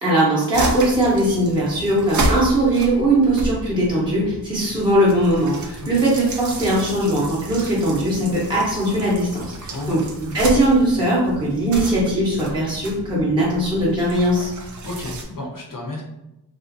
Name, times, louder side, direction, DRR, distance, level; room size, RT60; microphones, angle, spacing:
voice 1, 0.0-14.5, right 1 dB, 10° right, -7 dB, 0.7 m, -20 dB
sound 1, 0.5-15.2, right 1 dB, 45° right, 0.5 m, -31 dB
voice 2, 9.7-10.0 14.8-16.0, left 2 dB, 50° left, -2 dB, 0.7 m, -31 dB
2.5 x 2.4 x 2.5 m, 0.91 s
wide cardioid pair, 95°, 44 cm